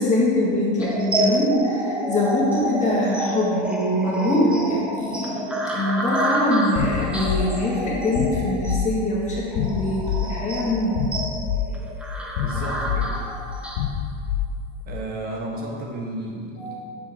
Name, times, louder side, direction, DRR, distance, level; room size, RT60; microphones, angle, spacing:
voice 1, 0.0-11.0 16.6-16.8, left 1 dB, 20° left, -5 dB, 1.6 m, -23 dB
sound 1, 0.8-13.8, right 1 dB, 5° right, 0.4 m, -28 dB
sound 2, 6.8-15.0, left 8 dB, 50° left, 0.5 m, -28 dB
voice 2, 12.4-13.2 14.8-16.8, right 1 dB, 25° right, -1 dB, 1.2 m, -32 dB
8.3 x 7.3 x 3.6 m, 2.3 s
supercardioid pair, 165°, 37 cm